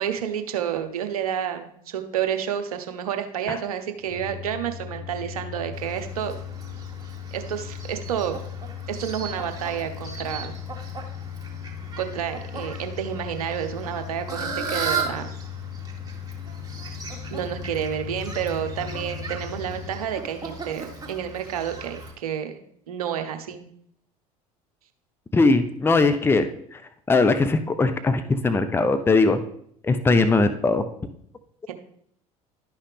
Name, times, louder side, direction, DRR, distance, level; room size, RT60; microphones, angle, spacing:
voice 1, 0.0-6.3 7.3-8.4 8.9-10.5 12.0-15.3 17.3-22.6 22.9-23.7 31.7-31.8, right 9 dB, 75° right, 8 dB, 0.8 m, -30 dB
sound 1, 4.0-20.1, left 9 dB, 35° left, 2.5 m, -38 dB
Fowl, 5.7-22.1, right 4 dB, 20° right, 1.9 m, -37 dB
voice 2, 25.3-26.8 27.1-29.4 29.8-30.9, left 3 dB, 10° left, 10 dB, 0.6 m, -20 dB
11.5 x 5.6 x 3.4 m, 0.66 s
figure-of-eight pair, 65°, 19 cm